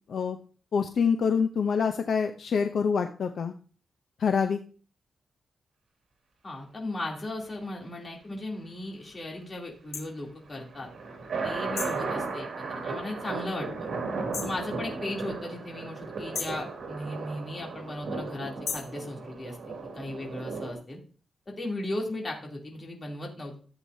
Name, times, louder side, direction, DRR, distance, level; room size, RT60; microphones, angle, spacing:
voice 1, 0.7-3.5 4.2-4.6, left 6 dB, 65° left, 6 dB, 0.6 m, -26 dB
voice 2, 6.4-10.9 11.4-13.9 14.4-21.0 21.5-23.5, left 1 dB, 30° left, -1 dB, 3.0 m, -37 dB
sound 1, 9.9-10.1 11.8-12.0 14.3-14.6 16.3-16.6 18.6-19.0, left 5 dB, 80° left, 2.0 m, -35 dB
sound 2, 10.5-20.7, right 4 dB, 75° right, 2.2 m, -35 dB
14.0 x 8.1 x 2.7 m, 0.39 s
wide cardioid pair, 135°, 0 cm